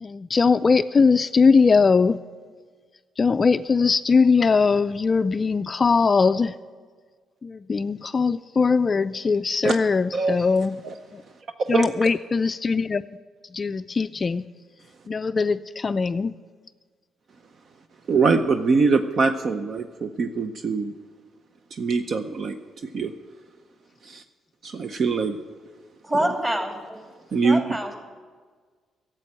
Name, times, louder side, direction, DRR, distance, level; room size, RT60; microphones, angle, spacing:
voice 1, 0.0-2.2 3.2-6.5 7.4-10.8 11.1-11.2 11.7-13.0 13.5-14.4 15.1-16.3, left 4 dB, 35° left, 12 dB, 0.3 m, -20 dB
voice 2, 10.1-10.5 10.8-10.9 11.6-11.9 18.1-20.9 21.7-22.6 22.8-23.1 24.0-24.2 24.6-25.4 27.3-27.6, right 4 dB, 55° right, 8 dB, 0.7 m, -23 dB
voice 3, 26.0-27.0 27.4-27.9, right 1 dB, 20° right, 3 dB, 2.5 m, -26 dB
12.0 x 7.6 x 9.8 m, 1.5 s
cardioid pair, 90°, 0 cm